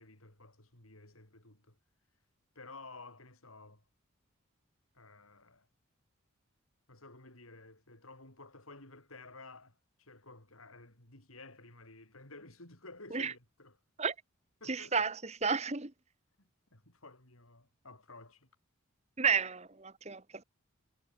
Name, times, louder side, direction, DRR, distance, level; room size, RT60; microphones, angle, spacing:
voice 1, 0.0-1.8 2.5-3.8 4.9-5.7 6.9-13.8 14.6-14.9 16.4-18.5, left 3 dB, 80° left, 7.7 m, -53 dB
voice 2, 14.7-15.9 19.2-20.4, right 5 dB, 30° right, 1.2 m, -32 dB
head